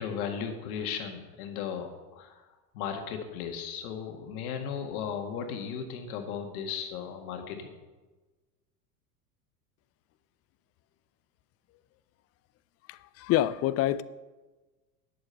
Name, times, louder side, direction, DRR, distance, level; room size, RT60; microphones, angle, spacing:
voice 1, 0.0-2.4 2.7-7.7, left 7 dB, 65° left, 4 dB, 2.0 m, -36 dB
voice 2, 12.9-14.0, left 13 dB, 30° left, 16 dB, 0.5 m, -27 dB
10.0 x 8.3 x 5.7 m, 1.3 s
hypercardioid pair, 95°, 46 cm